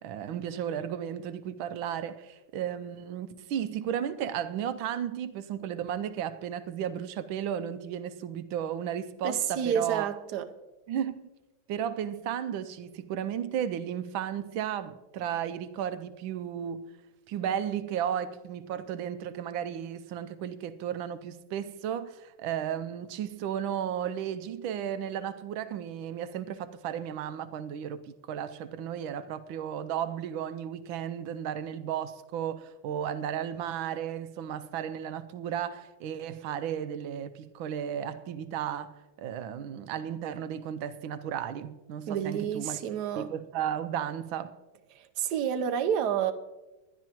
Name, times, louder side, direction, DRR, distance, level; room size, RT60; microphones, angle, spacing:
voice 1, 0.0-10.1 10.9-11.3 11.7-16.9 17.3-38.9 39.2-42.8 43.2-44.5, right 9 dB, 90° right, 1.5 m, -34 dB
voice 2, 9.2-10.5 42.1-43.3 44.9-46.3, right 8 dB, 65° right, 1.3 m, -29 dB
20.5 x 11.5 x 3.0 m
omnidirectional pair, 2.1 m